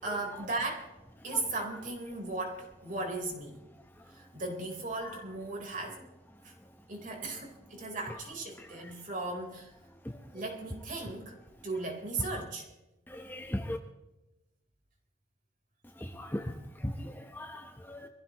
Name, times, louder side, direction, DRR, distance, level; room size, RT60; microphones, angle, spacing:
voice 1, 0.0-0.9 1.2-3.6 4.1-6.0 6.4-6.5 6.9-9.7 10.3-11.4 11.6-12.7, right 2 dB, 45° right, 1 dB, 3.9 m, -37 dB
voice 2, 13.1-13.8 16.2-16.4 16.8-18.1, left 1 dB, 10° left, 4 dB, 0.9 m, -37 dB
24.5 x 15.0 x 3.0 m, 0.98 s
head